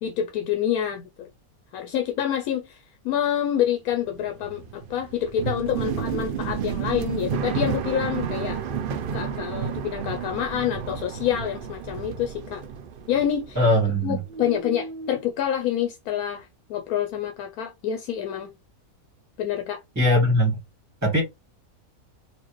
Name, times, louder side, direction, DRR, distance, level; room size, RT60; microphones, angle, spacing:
voice 1, 0.0-1.3 1.7-8.6 9.1-12.6 13.1-13.6 14.0-18.5 19.4-19.8, left 10 dB, 80° left, 1.1 m, -27 dB
sound 1, 3.9-14.0 14.3-15.1, right 7 dB, 80° right, 0.4 m, -31 dB
voice 2, 13.5-14.2 19.9-20.6 21.0-21.2, equal, 10° right, 1.3 m, -20 dB
4.1 x 2.5 x 3.1 m
omnidirectional pair, 1.5 m